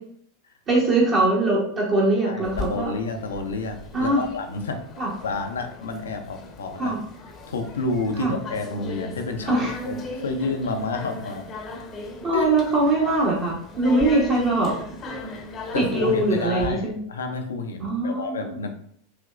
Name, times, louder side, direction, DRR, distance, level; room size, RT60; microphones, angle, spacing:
voice 1, 0.7-2.9 3.9-4.2 5.0-5.1 6.8-7.0 8.2-8.3 9.5-9.7 12.2-14.7 15.7-17.0 17.8-18.6, right 2 dB, 35° right, -5 dB, 1.1 m, -22 dB
voice 2, 2.2-4.8 5.2-7.0 7.5-11.5 12.3-12.5 15.7-18.7, left 3 dB, 75° left, 5 dB, 0.5 m, -30 dB
sound 1, 2.4-16.7, left 2 dB, 30° left, 0.7 m, -38 dB
4.9 x 2.9 x 2.5 m, 0.63 s
figure-of-eight pair, 90°, 0 cm